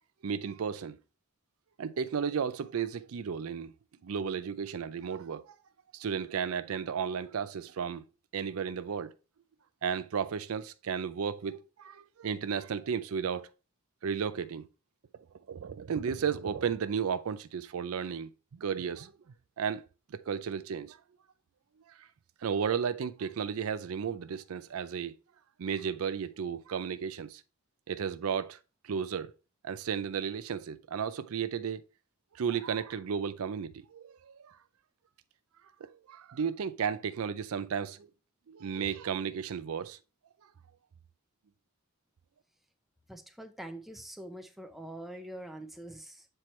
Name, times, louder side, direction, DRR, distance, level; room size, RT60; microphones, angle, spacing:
voice 1, 0.2-1.0 1.8-3.7 4.0-5.6 5.9-8.1 8.3-9.1 9.8-13.5 14.0-14.7 15.5-19.1 19.6-19.8 20.1-21.0 21.9-22.1 22.4-25.1 25.6-27.4 27.9-28.6 28.8-29.3 29.6-31.8 32.3-34.6 35.8-38.1 38.5-40.0, right 7 dB, 70° right, 0.4 m, -34 dB
voice 2, 43.1-46.3, right 1 dB, ahead, 0.6 m, -44 dB
7.7 x 4.4 x 3.1 m
head